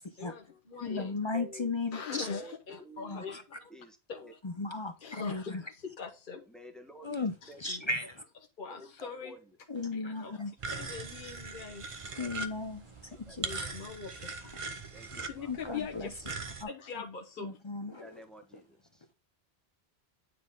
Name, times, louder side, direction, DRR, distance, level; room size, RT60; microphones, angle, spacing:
voice 1, 0.2-1.1 1.9-3.7 4.1-4.4 5.0-6.4 7.4-7.8 8.6-9.3 9.9-11.8 13.4-14.6 15.1-17.5, left 6 dB, 50° left, 1.2 m, -42 dB
voice 2, 0.8-2.3 3.1-3.4 4.4-5.6 7.0-7.3 7.6-8.2 9.7-10.5 12.2-13.7 15.5-16.1 16.6-16.7 17.4-18.0, left 3 dB, 35° left, 0.5 m, -36 dB
voice 3, 1.3-1.8 2.1-3.4 3.7-4.0 4.2-4.3 6.5-7.9 8.7-9.6 13.1-13.7 14.9-15.5 17.9-19.1, right 1 dB, ahead, 1.2 m, -51 dB
sound 1, 10.6-16.6, right 3 dB, 35° right, 0.7 m, -41 dB
9.3 x 3.9 x 3.6 m
omnidirectional pair, 1.1 m